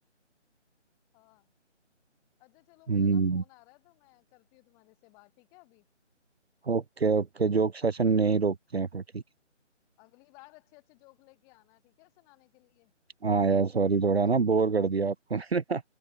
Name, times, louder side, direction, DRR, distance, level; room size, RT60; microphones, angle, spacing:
voice 1, 1.1-1.5 2.4-5.9 10.0-12.9, left 28 dB, 10° left, 5.7 m, -59 dB
voice 2, 2.9-3.4 6.6-9.2 13.2-15.8, right 4 dB, 55° right, 1.4 m, -26 dB
figure-of-eight pair, 170°, 36 cm